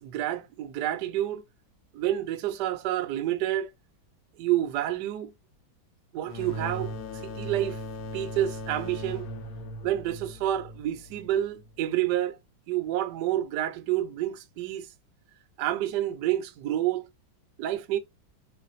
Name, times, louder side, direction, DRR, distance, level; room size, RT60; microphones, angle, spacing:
voice 1, 0.0-1.4 1.9-3.7 4.4-5.3 6.1-6.9 7.2-7.8 8.1-9.3 9.8-12.4 12.7-14.9 15.6-17.1 17.6-18.0, right 13 dB, 75° right, 1.0 m, -29 dB
sound 1, 6.3-11.7, equal, 65° left, 0.9 m, -38 dB
3.2 x 2.5 x 3.9 m
omnidirectional pair, 2.2 m